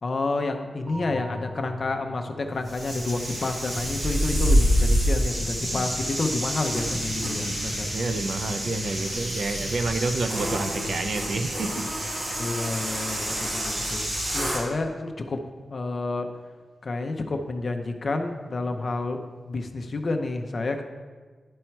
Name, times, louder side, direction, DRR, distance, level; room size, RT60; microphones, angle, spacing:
voice 1, 0.0-7.9 12.4-14.1 14.3-15.4 15.7-16.3 16.8-19.2 19.4-20.8, left 3 dB, 45° left, 5 dB, 0.6 m, -29 dB
sound 1, 0.9-12.8, left 3 dB, 20° right, 0.8 m, -43 dB
sound 2, 2.7-14.7, equal, 55° right, 1.8 m, -27 dB
voice 2, 7.8-12.3, right 3 dB, 75° right, 6 dB, 0.6 m, -29 dB
11.0 x 4.4 x 4.5 m, 1.5 s
wide cardioid pair, 165°, 0 cm